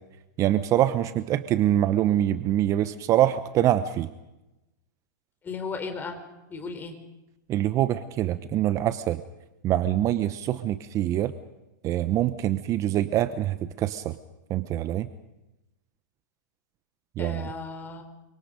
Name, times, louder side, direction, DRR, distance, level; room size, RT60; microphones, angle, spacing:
voice 1, 0.4-4.1 7.5-9.2 9.6-11.3 11.8-14.2 14.5-15.1 17.2-17.5, right 12 dB, 30° right, 12 dB, 1.0 m, -24 dB
voice 2, 5.4-6.2 6.5-7.0 17.2-18.0, left 4 dB, 20° left, 6 dB, 4.3 m, -35 dB
29.5 x 25.5 x 5.3 m, 0.98 s
hypercardioid pair, 135°, 11 cm